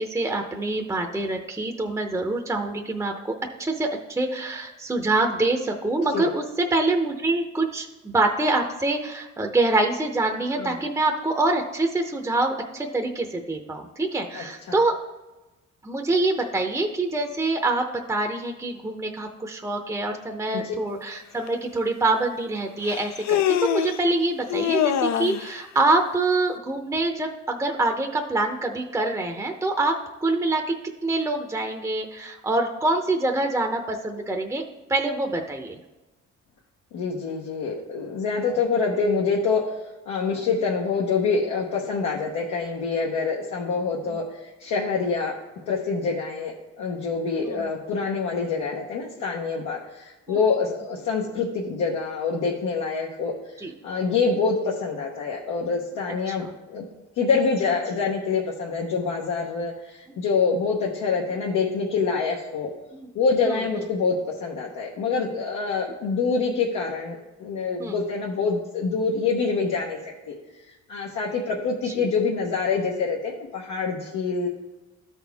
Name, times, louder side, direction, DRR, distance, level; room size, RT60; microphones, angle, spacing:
voice 1, 0.0-15.0 15.8-30.7 31.0-34.6 34.9-35.8 47.4-47.7 50.3-50.4 53.6-53.7 56.3-56.4 62.9-63.1 63.5-63.6 67.8-68.0 71.9-72.0, right 2 dB, 10° right, 3 dB, 0.7 m, -25 dB
voice 2, 14.3-14.8 20.5-20.7 36.9-39.6 40.1-45.4 45.7-56.8 57.2-62.7 63.1-70.0 70.3-70.4 70.9-74.5, left 4 dB, 85° left, -3 dB, 1.0 m, -26 dB
Human voice, 21.5-21.6 22.8-24.0 24.5-25.5, left 10 dB, 65° left, 0.5 m, -24 dB
12.5 x 4.4 x 3.5 m, 1.1 s
cardioid pair, 90°, 30 cm